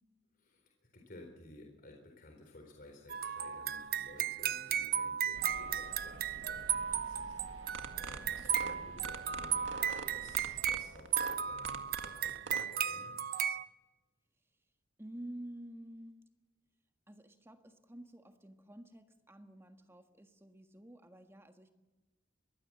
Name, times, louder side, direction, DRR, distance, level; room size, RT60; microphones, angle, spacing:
voice 1, 0.4-9.7 10.1-13.1, left 1 dB, 45° left, 2 dB, 4.1 m, -55 dB
sound 1, 3.1-13.6, right 9 dB, 50° right, 0.8 m, -35 dB
sound 2, 5.3-10.6, right 2 dB, 85° right, 1.2 m, -53 dB
sound 3, 7.6-12.6, right 4 dB, 65° right, 1.9 m, -43 dB
voice 2, 15.0-16.2 17.1-21.7, right 1 dB, 10° right, 6 dB, 1.6 m, -50 dB
23.5 x 20.0 x 7.5 m, 1.2 s
head